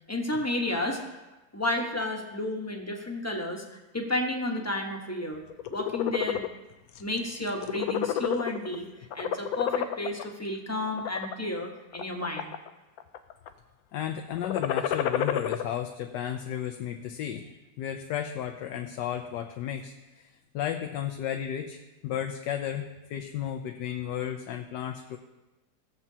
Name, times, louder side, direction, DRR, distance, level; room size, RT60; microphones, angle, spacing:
voice 1, 0.1-1.0 1.5-3.6 3.9-5.4 5.7-6.5 7.0-8.9 9.1-12.5, left 1 dB, 10° left, 1 dB, 0.8 m, -31 dB
sound 1, 5.5-6.5 7.0-7.2 7.5-8.8 9.1-10.2 10.9-11.3 11.9-12.7 13.0-13.5 14.3-15.6, left 10 dB, 70° left, 0.9 m, -29 dB
voice 2, 13.9-25.2, left 10 dB, 85° left, 5 dB, 1.3 m, -34 dB
16.5 x 7.3 x 2.8 m, 1.1 s
omnidirectional pair, 1.8 m